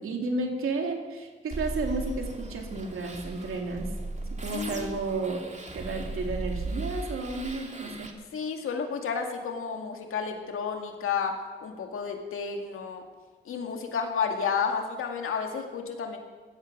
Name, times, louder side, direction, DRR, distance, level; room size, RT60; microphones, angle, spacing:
voice 1, 0.0-3.9 4.3-5.4 5.7-8.1, right 3 dB, 85° right, 2 dB, 2.6 m, -32 dB
sound 1, 1.5-8.1, right 2 dB, 35° right, 2.8 m, -37 dB
voice 2, 4.5-5.0 8.3-13.0 13.5-16.2, left 6 dB, 90° left, 3 dB, 2.1 m, -31 dB
17.0 x 13.0 x 6.2 m, 1.4 s
supercardioid pair, 45°, 21 cm